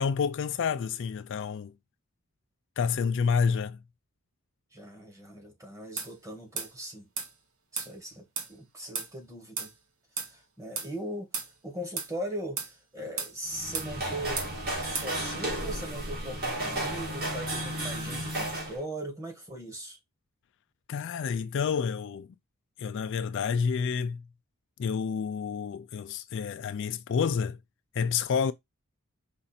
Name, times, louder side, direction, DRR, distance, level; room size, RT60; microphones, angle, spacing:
voice 1, 0.0-1.7 2.8-3.8 20.9-22.3 22.8-24.3 24.8-27.6 27.9-28.5, left 6 dB, 55° left, 0.3 m, -29 dB
voice 2, 4.7-7.1 7.7-9.7 10.2-14.4 14.8-20.0, right 1 dB, 15° right, 1.3 m, -40 dB
sound 1, 6.0-6.1 6.6-6.7 7.2-7.3 7.8-7.9 8.4-8.5 9.0-9.1 9.6-9.7 10.2-10.3 10.8-10.9 11.3-11.5 12.0-12.1 12.6-12.7 13.2-13.3 13.7-13.9 14.4-14.5 15.0-15.1, right 5 dB, 70° right, 1.1 m, -34 dB
sound 2, 13.4-18.8, right 1 dB, 40° right, 1.9 m, -33 dB
5.0 x 2.5 x 4.1 m
head